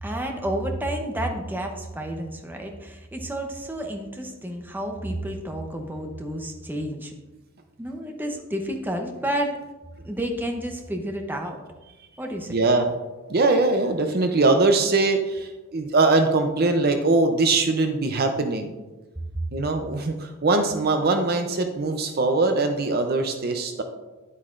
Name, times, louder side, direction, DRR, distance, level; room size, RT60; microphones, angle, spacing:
voice 1, 0.0-7.1 7.8-9.6 10.0-11.6 12.2-12.5, right 1 dB, 10° right, 3 dB, 0.7 m, -30 dB
voice 2, 12.5-12.9 13.3-18.7 19.5-23.8, right 3 dB, 45° right, 6 dB, 0.6 m, -22 dB
9.9 x 8.2 x 2.5 m, 1.2 s
head